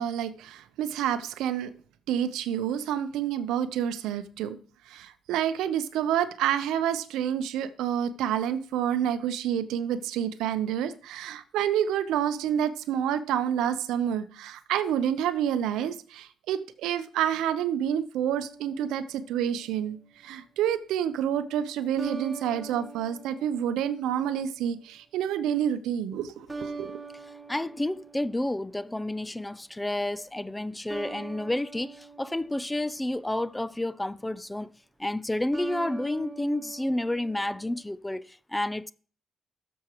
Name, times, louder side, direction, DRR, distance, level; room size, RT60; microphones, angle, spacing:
voice 1, 0.0-1.7 2.1-4.6 4.9-20.0 20.2-27.0, right 9 dB, 90° right, 0.6 m, -28 dB
sound 1, 18.3-19.7 22.0-24.4 26.5-29.1 30.9-33.4 35.5-37.8, right 4 dB, 15° right, 1.2 m, -43 dB
voice 2, 27.5-34.7 35.0-38.9, left 1 dB, 10° left, 0.3 m, -30 dB
12.5 x 7.1 x 3.0 m
cardioid pair, 90°, 0 cm